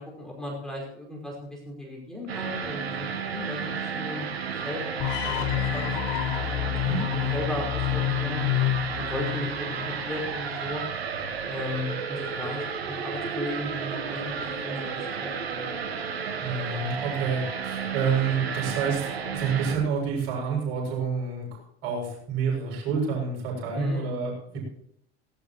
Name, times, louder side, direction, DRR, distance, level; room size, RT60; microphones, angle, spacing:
voice 1, 0.0-4.3 4.6-4.8 5.1-5.9 6.4-8.4 9.0-10.8 11.5-15.7 23.7-24.2, left 1 dB, ahead, -3 dB, 5.4 m, -35 dB
sound 1, 2.3-19.8, right 6 dB, 65° right, 1.7 m, -33 dB
sound 2, 5.0-10.1, left 15 dB, 40° left, 0.6 m, -28 dB
voice 2, 16.4-21.5 21.8-24.6, right 6 dB, 50° right, -2 dB, 7.3 m, -28 dB
18.0 x 17.0 x 3.1 m, 0.73 s
figure-of-eight pair, 80°, 32 cm